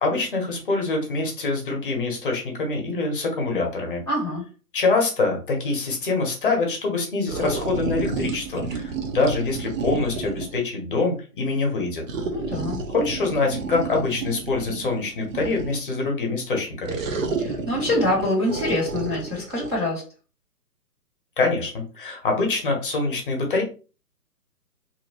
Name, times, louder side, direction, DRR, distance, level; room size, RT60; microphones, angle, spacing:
voice 1, 0.0-4.0 4.7-12.0 12.9-17.0 21.4-23.6, left 3 dB, 35° left, 1 dB, 0.8 m, -25 dB
voice 2, 4.1-4.4 12.3-12.8 17.4-20.0, left 1 dB, 15° right, -12 dB, 0.5 m, -25 dB
sound 1, 7.3-10.6 12.1-15.9 16.8-19.8, right 4 dB, 55° right, 0.7 m, -31 dB
2.7 x 2.1 x 2.7 m, 0.34 s
hypercardioid pair, 145°, 49 cm